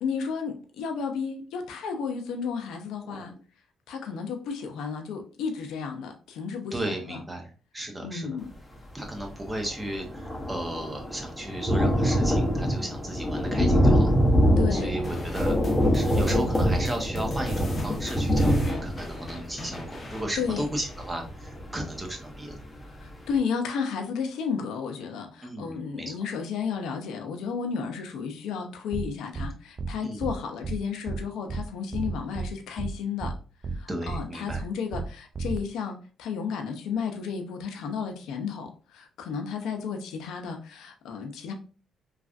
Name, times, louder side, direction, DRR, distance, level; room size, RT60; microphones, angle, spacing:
voice 1, 0.0-3.3 3.9-7.2 8.0-8.5 14.6-15.2 20.4-20.6 22.9-33.3 33.7-41.5, left 6 dB, 85° left, 5 dB, 0.5 m, -33 dB
voice 2, 6.7-8.3 8.9-14.1 14.7-15.6 15.9-22.6 25.4-26.2 30.0-30.2 33.9-34.6, right 1 dB, 20° right, 2 dB, 0.9 m, -35 dB
Thunder, 9.2-9.3 9.5-22.1 22.6-22.7 23.0-23.1, equal, 10° left, 0.8 m, -24 dB
sound 1, 15.0-21.6, left 2 dB, 35° left, 0.8 m, -43 dB
sound 2, 28.9-29.1 29.3-29.5 29.8-29.9 30.2-30.3 30.6-30.8 31.1-31.2 31.5-31.6 31.9-32.5 32.8-32.9 33.2-33.3 33.6-33.8 34.1-34.2 34.5-34.6 34.9-35.1 35.3-35.6, right 4 dB, 35° right, 0.5 m, -32 dB
3.1 x 2.4 x 2.5 m, 0.37 s
cardioid pair, 90°, 0 cm